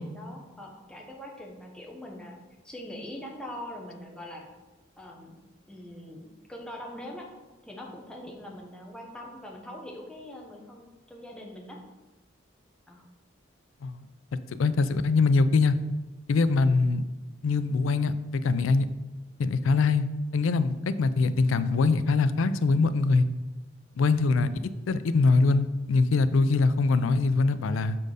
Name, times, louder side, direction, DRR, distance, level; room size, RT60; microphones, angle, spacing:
voice 1, 0.0-2.4 2.6-4.5 5.0-5.4 5.7-7.3 7.6-11.8 12.9-13.0 24.2-25.3, left 1 dB, 5° left, -1 dB, 0.9 m, -43 dB
voice 2, 14.6-15.8 16.3-17.0 17.4-18.9 19.4-20.1 20.3-23.3 24.0-24.5 24.9-28.0, left 3 dB, 85° left, 14 dB, 0.4 m, -23 dB
6.6 x 4.3 x 4.9 m, 1.1 s
head